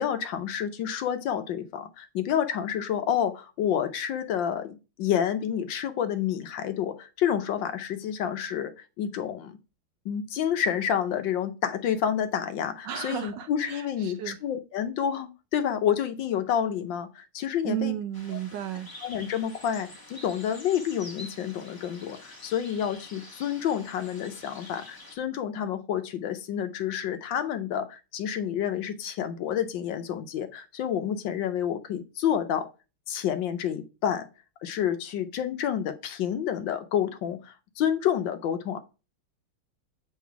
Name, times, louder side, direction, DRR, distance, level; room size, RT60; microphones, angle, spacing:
voice 1, 0.0-8.7 9.0-9.6 10.0-18.0 19.0-32.7 33.1-34.3 34.6-38.8, left 9 dB, 70° left, 1.4 m, -29 dB
voice 2, 12.8-14.4 17.6-18.9, right 11 dB, 75° right, 1.1 m, -33 dB
sound 1, 18.1-25.2, left 1 dB, 15° left, 0.7 m, -47 dB
7.5 x 4.0 x 4.7 m
omnidirectional pair, 2.3 m